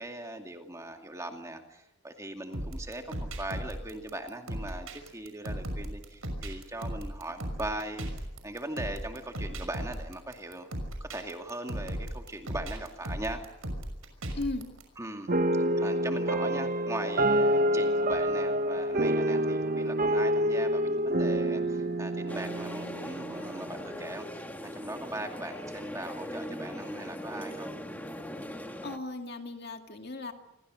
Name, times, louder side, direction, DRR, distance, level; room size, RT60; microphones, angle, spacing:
voice 1, 0.0-8.1 8.4-10.7 11.0-13.5 15.0-15.4 15.8-27.7, right 1 dB, 15° right, 3 dB, 2.3 m, -39 dB
sound 1, 2.5-14.8, right 1 dB, 85° right, 6.0 m, -37 dB
voice 2, 14.3-14.7 28.8-30.3, left 2 dB, 50° left, 4 dB, 2.3 m, -36 dB
sound 2, 15.3-23.8, right 1 dB, 40° right, 1.0 m, -27 dB
sound 3, 22.3-29.0, equal, 10° left, 1.5 m, -40 dB
29.0 x 23.0 x 6.3 m, 0.93 s
head